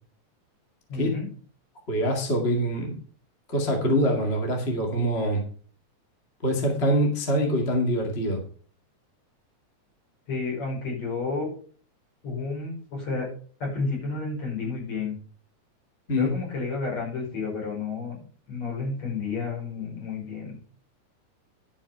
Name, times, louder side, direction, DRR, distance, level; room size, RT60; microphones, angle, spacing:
voice 1, 0.9-1.3 10.3-11.5 12.2-13.3 13.6-15.2 16.1-18.2 18.5-20.5, left 4 dB, 65° left, -2 dB, 6.4 m, -31 dB
voice 2, 1.9-3.0 3.5-5.4 6.4-8.4 16.1-16.3, equal, 25° left, 1 dB, 2.1 m, -24 dB
11.5 x 6.3 x 5.7 m, 0.44 s
omnidirectional pair, 3.3 m